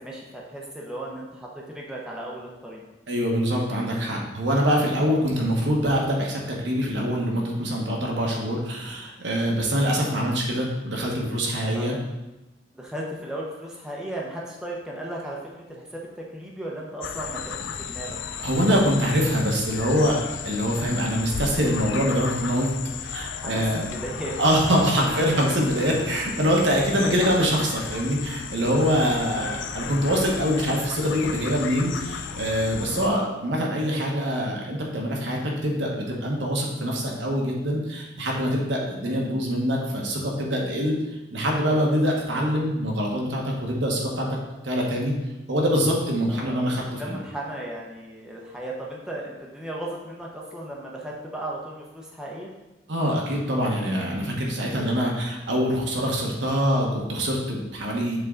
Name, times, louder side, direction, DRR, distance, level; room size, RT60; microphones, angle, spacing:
voice 1, 0.0-2.8 11.7-12.0 12.7-18.2 23.3-24.4 25.1-25.2 29.3-29.7 46.3-46.6 46.9-52.5, right 1 dB, 5° right, -3 dB, 0.7 m, -36 dB
voice 2, 3.1-11.9 18.4-20.2 20.4-22.7 23.0-23.9 24.4-41.0 41.3-44.3 44.6-45.1 45.5-47.2 52.9-58.2, equal, 75° right, -1 dB, 1.2 m, -24 dB
sound 1, 17.0-33.1, left 6 dB, 85° left, 0.4 m, -34 dB
6.7 x 3.7 x 3.8 m, 1.0 s
head